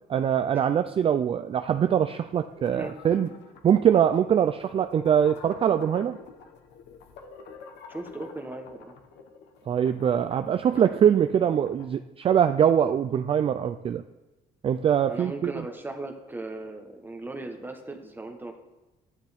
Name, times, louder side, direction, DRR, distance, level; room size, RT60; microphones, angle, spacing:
voice 1, 0.1-3.3 3.6-6.2 9.7-14.0 14.6-15.5, right 9 dB, 35° right, 10 dB, 0.3 m, -23 dB
sound 1, 2.4-11.9, left 5 dB, 80° left, 1.1 m, -48 dB
voice 2, 7.9-8.9 15.1-18.6, right 2 dB, 10° right, 4 dB, 1.1 m, -37 dB
11.5 x 10.0 x 3.5 m, 1.1 s
cardioid pair, 110°, 17 cm